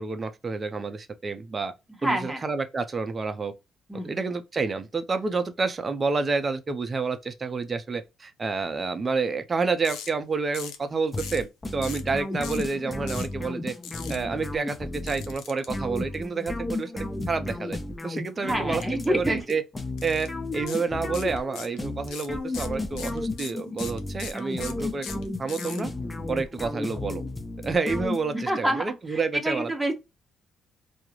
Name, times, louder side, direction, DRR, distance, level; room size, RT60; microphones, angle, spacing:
voice 1, 0.0-1.7 2.0-3.5 4.0-13.7 14.1-17.8 18.0-18.8 19.1-19.6 20.0-25.1 25.4-25.9 26.3-27.2 27.6-29.7, right 4 dB, 35° right, 0.5 m, -29 dB
voice 2, 2.0-2.4 3.9-4.1 18.4-19.4 28.5-29.9, right 1 dB, 5° right, 0.7 m, -27 dB
sound 1, 9.8-10.1 10.5-10.8 11.2-11.4 11.8-12.1 12.4-12.7 13.1-13.3 13.8-14.2 15.1-15.7 18.8-19.1 19.4-19.5 20.0-20.3 20.7-20.8 21.1-21.8 22.1-25.8, left 8 dB, 85° left, 0.5 m, -39 dB
sound 2, 11.1-28.6, left 2 dB, 20° left, 0.5 m, -33 dB
2.3 x 2.0 x 2.9 m
cardioid pair, 90°, 0 cm